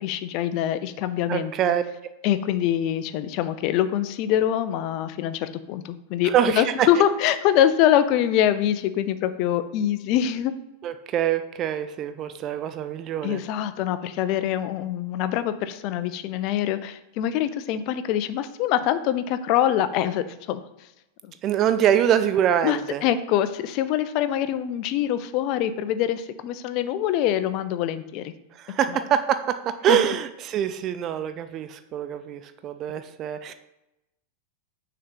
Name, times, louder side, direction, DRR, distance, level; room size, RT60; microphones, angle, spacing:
voice 1, 0.0-1.5 2.2-10.5 13.2-20.6 21.2-21.3 22.6-28.3 29.9-30.0, left 11 dB, 40° left, 12 dB, 0.4 m, -24 dB
voice 2, 1.3-1.8 6.2-6.9 10.8-13.4 21.4-23.0 28.6-33.5, right 10 dB, 35° right, 11 dB, 0.4 m, -24 dB
6.3 x 2.9 x 5.2 m, 0.92 s
figure-of-eight pair, 90°, 0 cm